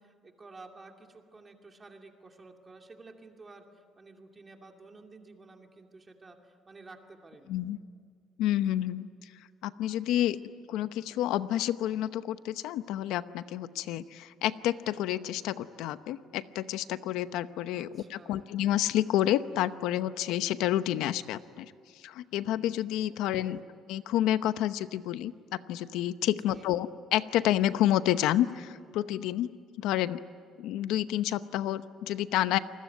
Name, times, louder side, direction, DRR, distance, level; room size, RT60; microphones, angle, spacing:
voice 1, 0.0-7.6 17.7-18.5 23.1-23.6 26.3-26.7, right 3 dB, 20° right, 3 dB, 2.6 m, -52 dB
voice 2, 8.4-9.1 9.6-10.4 10.7-21.7 22.0-23.6 23.9-29.5 29.8-30.2 30.6-32.6, left 12 dB, 90° left, 13 dB, 0.8 m, -29 dB
28.5 x 20.5 x 9.4 m, 2.1 s
cardioid pair, 145°, 0 cm